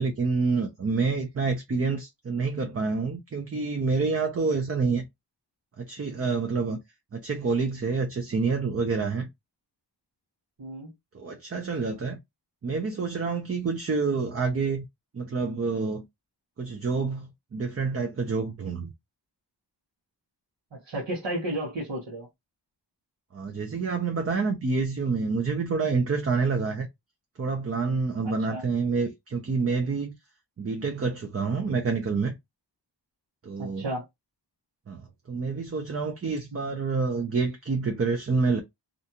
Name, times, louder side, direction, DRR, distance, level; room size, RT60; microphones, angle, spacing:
voice 1, 0.0-5.1 5.8-6.8 7.1-9.3 11.1-12.2 12.6-14.8 15.1-16.0 16.6-18.9 23.3-26.9 27.4-30.1 30.6-32.4 33.4-33.8 34.9-35.0 35.3-38.6, right 4 dB, 35° right, 0.5 m, -27 dB
voice 2, 10.6-10.9 20.7-22.3 28.2-28.6 33.6-34.0 36.5-36.8, right 1 dB, 90° right, 1.0 m, -33 dB
2.5 x 2.3 x 2.7 m
wide cardioid pair, 75°, 42 cm